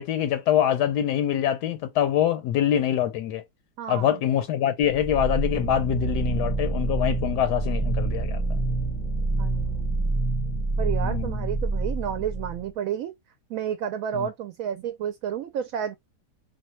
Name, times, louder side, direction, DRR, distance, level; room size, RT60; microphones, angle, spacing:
voice 1, 0.0-3.4 3.9-8.6 11.0-11.5 14.1-14.3, left 10 dB, 85° left, 1.2 m, -24 dB
voice 2, 3.8-4.1 9.4-10.1 10.8-13.1 13.5-16.0, right 9 dB, 70° right, 0.9 m, -31 dB
sound 1, 4.8-12.7, right 3 dB, 25° left, 0.7 m, -27 dB
4.0 x 2.2 x 3.0 m
omnidirectional pair, 1.7 m